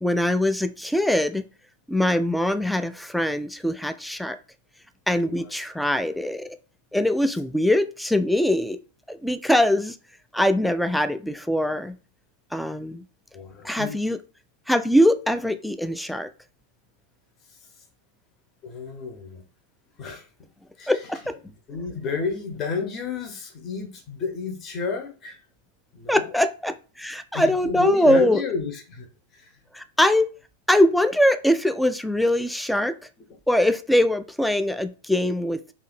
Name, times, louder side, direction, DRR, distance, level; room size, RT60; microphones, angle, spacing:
voice 1, 0.0-1.4 1.9-4.4 5.1-6.5 6.9-8.8 9.1-10.0 10.3-11.9 12.5-13.0 13.6-14.2 14.7-16.3 20.9-21.3 26.1-28.4 29.7-30.3 30.7-32.9 33.5-35.7, left 1 dB, ahead, 10 dB, 0.3 m, -22 dB
voice 2, 13.3-14.0 18.6-19.4 20.0-20.3 20.8-20.9 21.7-25.4 25.9-26.3 27.3-29.1 29.3-29.5, left 4 dB, 30° left, 3 dB, 0.9 m, -31 dB
2.7 x 2.5 x 4.1 m, 0.35 s
figure-of-eight pair, 90°, 0 cm